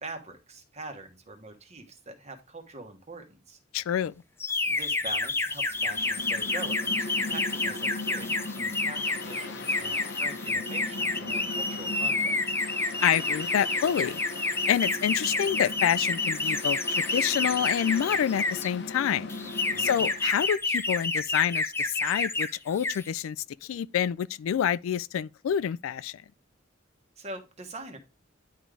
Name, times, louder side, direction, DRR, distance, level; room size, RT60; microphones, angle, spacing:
voice 1, 0.0-3.6 4.7-12.5 19.7-20.1 27.2-28.0, right 2 dB, 35° right, 1.2 m, -43 dB
voice 2, 3.7-4.1 13.0-14.2 14.7-19.3 19.8-23.4 23.6-26.2, left 9 dB, 85° left, 0.3 m, -27 dB
sound 1, 4.4-18.7 19.3-22.5 22.8-23.1, left 3 dB, 10° left, 0.4 m, -29 dB
Mechanical fan, 5.7-20.5, left 2 dB, 60° left, 0.8 m, -39 dB
10.0 x 3.8 x 3.3 m
head